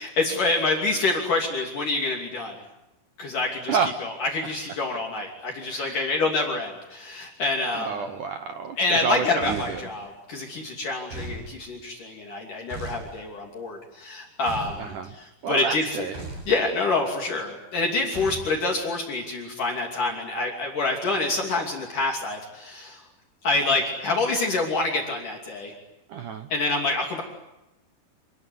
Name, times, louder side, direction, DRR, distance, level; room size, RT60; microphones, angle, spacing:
voice 1, 0.0-2.5 3.2-7.9 8.8-16.1 16.5-23.0 23.4-25.7 26.5-27.2, left 3 dB, 50° left, 1 dB, 4.1 m, -27 dB
voice 2, 5.7-6.2 7.7-9.8 14.8-15.1 15.4-16.1 26.1-26.5, right 6 dB, 75° right, 7 dB, 1.8 m, -29 dB
sound 1, 9.4-9.9 11.1-11.4 12.7-13.1 14.5-14.8 16.1-16.5 18.1-18.5, right 2 dB, 60° right, 10.0 m, -36 dB
28.0 x 21.5 x 9.4 m, 0.91 s
omnidirectional pair, 5.3 m